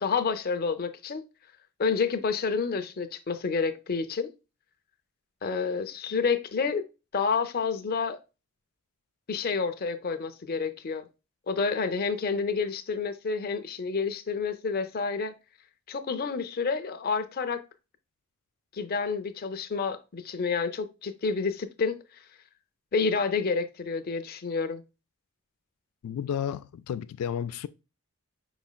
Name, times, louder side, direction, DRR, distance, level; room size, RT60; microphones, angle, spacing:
voice 1, 0.0-1.2 1.8-4.3 5.4-6.8 7.1-8.2 9.3-11.0 11.5-15.3 15.9-17.6 18.7-22.0 22.9-24.8, left 5 dB, 45° left, 0.5 m, -29 dB
voice 2, 26.0-27.7, left 8 dB, 90° left, 0.3 m, -32 dB
5.7 x 4.1 x 2.2 m
head